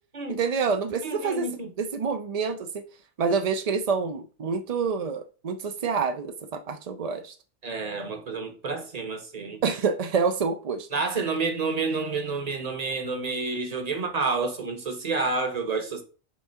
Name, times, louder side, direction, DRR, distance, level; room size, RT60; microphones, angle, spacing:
voice 1, 0.3-1.5 1.8-2.8 3.2-7.3 9.6-10.9, right 5 dB, 65° right, 0.3 m, -27 dB
voice 2, 1.0-1.7 7.6-9.6 10.9-16.0, right 4 dB, 35° right, 0.9 m, -29 dB
6.1 x 3.6 x 5.5 m
omnidirectional pair, 1.4 m